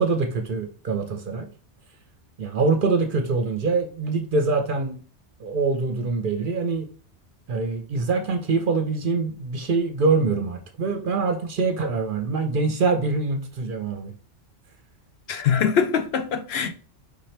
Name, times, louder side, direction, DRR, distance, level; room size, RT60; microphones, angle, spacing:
voice 1, 0.0-1.5 2.4-5.0 5.4-6.9 7.5-14.1, right 4 dB, 55° right, 0.7 m, -24 dB
voice 2, 15.3-16.7, left 7 dB, 65° left, 0.8 m, -23 dB
4.8 x 2.9 x 3.2 m
omnidirectional pair, 1.2 m